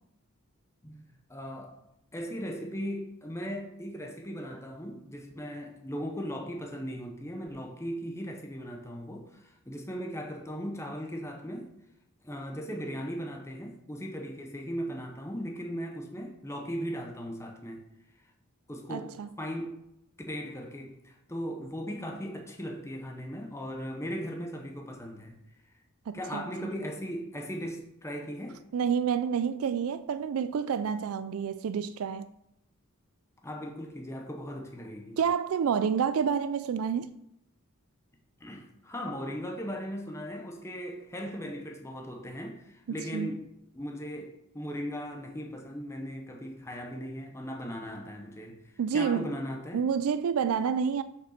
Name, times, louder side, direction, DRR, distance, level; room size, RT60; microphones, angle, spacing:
voice 1, 1.3-1.8 2.1-11.7 12.2-17.8 18.7-19.8 20.3-25.4 26.1-28.6 33.4-35.2 38.4-43.4 43.7-48.6 48.9-49.8, equal, 15° left, 0.9 m, -38 dB
voice 2, 18.9-19.3 26.1-26.7 28.7-32.3 35.2-37.1 42.9-43.3 48.8-49.3 49.7-51.0, right 7 dB, 75° right, 0.4 m, -29 dB
6.6 x 5.2 x 6.6 m
head